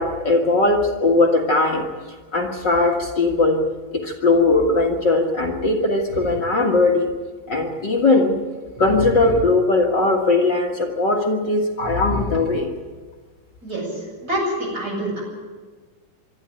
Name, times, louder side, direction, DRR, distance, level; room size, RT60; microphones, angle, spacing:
voice 1, 0.0-1.8 2.3-3.6 3.9-7.1 7.5-8.4 8.8-12.7, left 2 dB, 50° left, 1 dB, 1.4 m, -19 dB
voice 2, 13.6-15.2, right 1 dB, 25° right, -1 dB, 7.3 m, -26 dB
24.5 x 13.0 x 9.0 m, 1.4 s
omnidirectional pair, 4.3 m